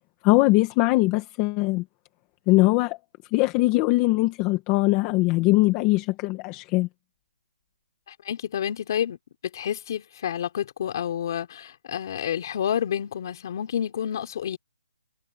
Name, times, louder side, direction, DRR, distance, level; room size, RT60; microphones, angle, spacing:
voice 1, 0.2-1.8 2.5-3.0 3.3-6.9, left 21 dB, 15° left, 1.5 m, -21 dB
voice 2, 8.1-9.2 9.5-14.6, left 9 dB, 35° left, 3.8 m, -29 dB
hypercardioid pair, 175°, 4 cm